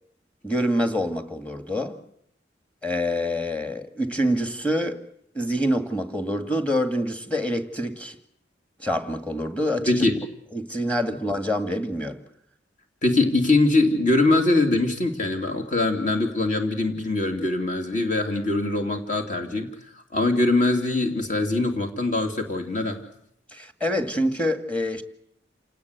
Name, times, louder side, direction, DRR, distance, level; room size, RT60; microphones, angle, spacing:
voice 1, 0.4-2.0 2.8-5.0 5.3-8.2 8.8-10.1 10.5-12.2 23.5-25.0, equal, 5° left, 2.0 m, -26 dB
voice 2, 9.9-10.2 13.0-19.7 19.9-23.0, left 2 dB, 45° left, 2.9 m, -22 dB
28.5 x 19.0 x 8.2 m
head